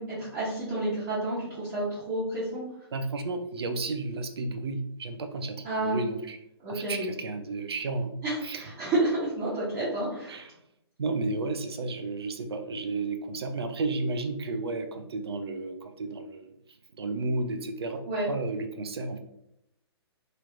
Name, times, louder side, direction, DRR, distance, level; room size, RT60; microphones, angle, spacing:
voice 1, 0.0-2.6 5.6-6.0 6.6-7.1 8.2-10.4 18.1-18.3, right 1 dB, 25° right, -11 dB, 1.2 m, -30 dB
voice 2, 2.9-6.4 6.7-8.2 8.4-8.7 10.3-10.5 11.0-16.5 17.0-18.0 18.3-19.2, right 3 dB, 65° right, 8 dB, 0.5 m, -32 dB
3.1 x 2.9 x 2.5 m, 0.80 s
figure-of-eight pair, 125°, 14 cm